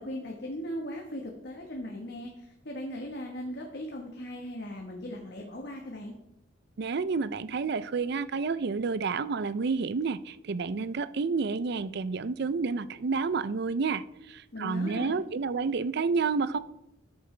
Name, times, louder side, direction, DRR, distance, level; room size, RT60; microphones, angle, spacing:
voice 1, 0.0-6.2 14.5-15.1, equal, 60° left, 0 dB, 1.4 m, -38 dB
voice 2, 6.8-16.6, right 4 dB, 60° right, 15 dB, 0.5 m, -30 dB
13.5 x 8.0 x 3.3 m, 0.87 s
head